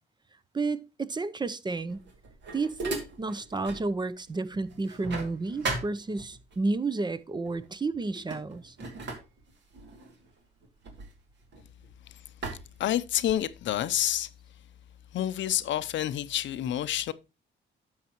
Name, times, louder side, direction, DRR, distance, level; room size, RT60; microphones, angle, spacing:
voice 1, 0.5-2.0 2.5-8.7, right 3 dB, 20° right, 0.6 m, -31 dB
sound 1, 1.9-3.9 4.3-6.6 7.4-7.7 8.0-11.9 12.4-13.6, right 3 dB, 65° right, 2.5 m, -39 dB
voice 2, 12.8-14.3 15.1-17.1, left 12 dB, 70° left, 0.6 m, -28 dB
10.5 x 7.2 x 3.0 m
cardioid pair, 90°, 20 cm